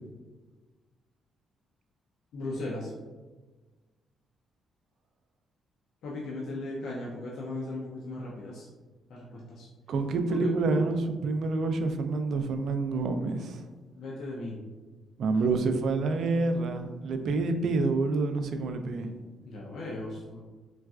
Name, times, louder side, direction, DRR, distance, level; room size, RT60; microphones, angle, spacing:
voice 1, 2.3-2.9 6.0-8.7 9.1-9.7 10.3-10.5 14.0-14.6 15.3-15.4 19.0-20.4, left 2 dB, 75° left, -4 dB, 0.5 m, -37 dB
voice 2, 9.9-13.6 15.2-19.1, right 3 dB, 65° right, 7 dB, 0.3 m, -28 dB
3.9 x 2.3 x 2.3 m, 1.3 s
cardioid pair, 90°, 0 cm